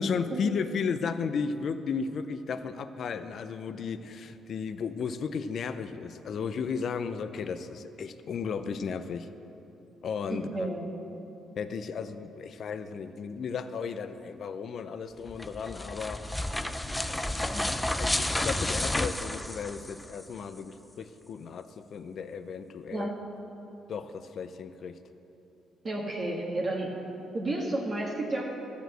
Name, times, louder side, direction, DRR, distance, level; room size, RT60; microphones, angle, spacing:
voice 1, 0.0-9.3 10.0-10.7 11.6-16.2 17.1-17.5 18.0-23.1 23.9-25.0, left 6 dB, 60° left, 11 dB, 0.5 m, -34 dB
voice 2, 10.3-10.9 22.9-23.1 25.8-26.9 27.3-28.4, right 2 dB, 40° right, -4 dB, 1.6 m, -31 dB
sound 1, 15.3-20.2, left 1 dB, 10° left, 0.5 m, -31 dB
13.5 x 5.1 x 7.8 m, 3.0 s
cardioid pair, 90°, 0 cm